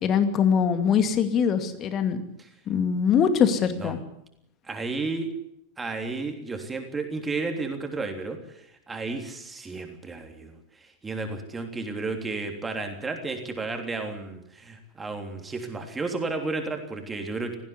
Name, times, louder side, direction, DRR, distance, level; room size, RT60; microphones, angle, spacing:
voice 1, 0.0-2.2 2.7-4.0, left 7 dB, 30° left, 9 dB, 2.4 m, -22 dB
voice 2, 4.6-5.3 5.8-17.6, right 3 dB, 15° right, 5 dB, 3.4 m, -32 dB
18.5 x 15.5 x 9.9 m, 0.77 s
figure-of-eight pair, 90°, 0 cm